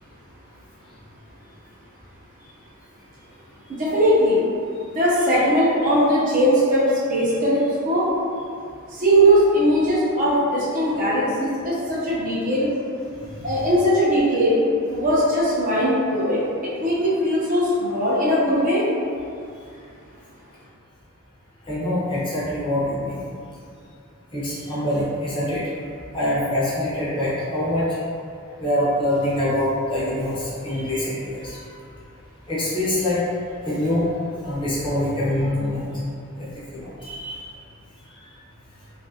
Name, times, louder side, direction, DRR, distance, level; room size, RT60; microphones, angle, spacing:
voice 1, 3.7-4.4 4.9-8.1 8.9-12.7 13.4-14.6 14.9-16.5 16.8-18.8, equal, 35° right, -7 dB, 0.5 m, -19 dB
voice 2, 21.7-23.2 24.3-25.6 26.1-27.9 28.6-31.6 32.5-33.2 33.6-34.1 34.4-35.8 36.4-37.4, left 1 dB, 20° left, -9 dB, 0.6 m, -24 dB
2.8 x 2.4 x 2.7 m, 2.4 s
head